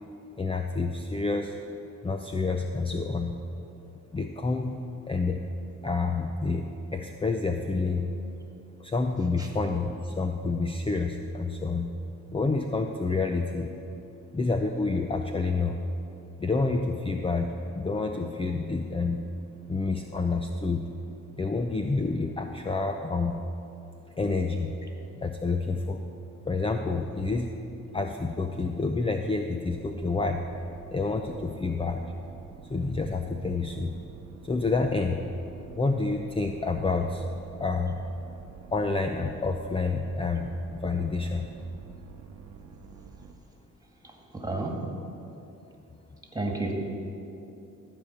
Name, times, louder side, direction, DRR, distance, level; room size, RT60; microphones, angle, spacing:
voice 1, 0.4-1.6 2.0-3.4 4.1-4.8 5.1-5.4 5.8-6.7 6.9-8.1 8.8-11.9 12.3-13.7 14.3-15.8 16.4-19.2 19.7-20.9 21.3-23.4 24.2-24.7 25.2-26.0 26.5-27.6 27.9-30.5 30.9-32.0 32.7-34.0 34.4-35.2 35.8-37.2 37.6-38.0 38.7-41.5, left 3 dB, 20° left, 5 dB, 0.6 m, -28 dB
sound 1, 29.7-43.3, right 6 dB, 80° right, 0.9 m, -48 dB
voice 2, 44.0-44.8 46.3-46.7, right 2 dB, 10° right, 1 dB, 2.1 m, -32 dB
13.5 x 5.1 x 8.5 m, 2.8 s
cardioid pair, 90°, 30 cm